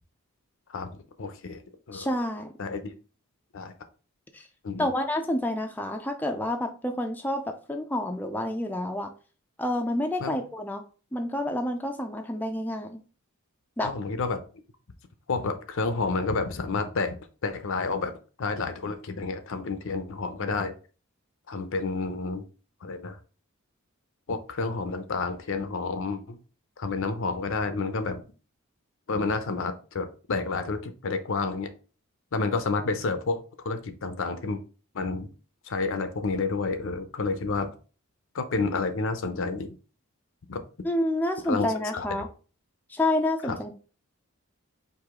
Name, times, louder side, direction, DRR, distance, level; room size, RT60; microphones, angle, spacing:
voice 1, 1.2-1.6 1.9-2.1 2.6-2.9 3.5-3.7 4.6-4.9 10.2-10.4 13.8-14.4 15.3-18.1 18.4-20.7 21.5-22.4 22.8-23.2 24.3-26.4 26.8-28.2 29.1-31.7 32.3-34.6 34.9-35.3 35.7-37.7 38.3-39.8 40.5-40.6 41.5-41.7 41.9-42.3 43.4-43.6, left 3 dB, 65° left, 9 dB, 0.6 m, -30 dB
voice 2, 1.9-2.5 4.3-4.4 4.8-9.1 9.6-10.8 11.1-13.0 13.8-13.9 40.8-42.3 42.9-43.7, left 1 dB, 10° left, 4 dB, 0.4 m, -29 dB
4.8 x 2.7 x 3.6 m, 0.36 s
head